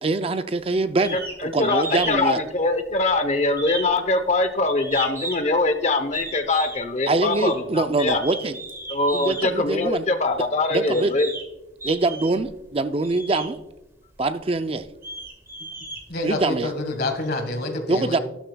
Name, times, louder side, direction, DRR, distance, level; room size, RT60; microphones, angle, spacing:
voice 1, 0.0-1.2 1.4-2.4 7.1-8.6 9.1-10.1 10.7-11.1 11.8-13.6 14.2-14.9 16.2-16.7 17.9-18.2, right 2 dB, 30° right, 10 dB, 0.4 m, -24 dB
sound 1, 1.0-1.4 1.6-2.2 2.5-3.1 3.5-5.6 6.1-6.8 7.3-7.6 8.1-9.5 10.3-10.4 10.9-11.5 11.8-12.5 13.0-13.5 14.1-14.2 14.8-16.6, right 2 dB, 15° right, 1.5 m, -35 dB
voice 2, 1.1-8.2 8.9-11.3, left 2 dB, 40° left, 9 dB, 0.8 m, -23 dB
voice 3, 16.1-18.2, left 2 dB, 60° left, 6 dB, 1.6 m, -27 dB
12.5 x 11.5 x 2.3 m, 0.96 s
head